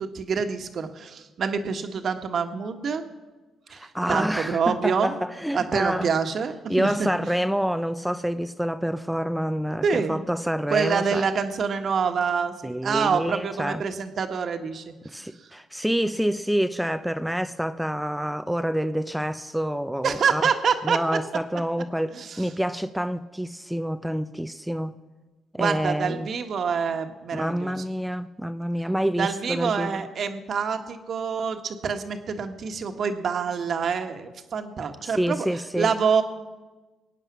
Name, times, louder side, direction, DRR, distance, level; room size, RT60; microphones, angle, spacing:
voice 1, 0.0-3.0 3.7-5.1 5.5-7.1 9.8-10.2 10.7-15.2 20.0-21.0 22.1-22.5 25.6-27.7 29.1-35.4 35.8-36.2, right 6 dB, 60° right, 1.5 m, -26 dB
voice 2, 3.7-6.1 6.7-11.2 12.6-13.8 15.0-20.4 20.8-25.0 25.5-26.3 27.3-30.0 35.0-35.9, equal, 5° right, 0.6 m, -27 dB
22.0 x 9.1 x 6.1 m
supercardioid pair, 65°, 0 cm